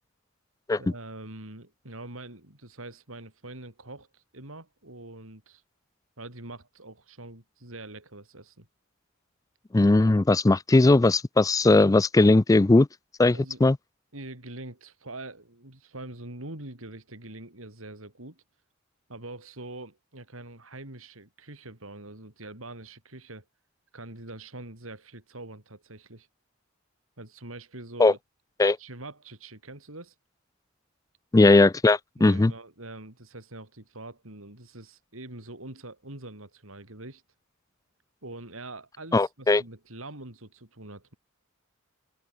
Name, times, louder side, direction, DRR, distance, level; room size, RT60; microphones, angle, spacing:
voice 1, 0.8-5.6 6.2-8.7 13.3-13.6 14.1-18.4 19.1-23.5 23.9-26.3 27.2-28.2 28.8-30.2 32.2-37.2 38.2-41.1, right 2 dB, 80° right, 5.1 m, -44 dB
voice 2, 9.7-12.9 13.2-13.8 28.0-28.1 28.6-28.8 31.3-32.5 39.1-39.6, left 2 dB, 15° left, 0.4 m, -19 dB
head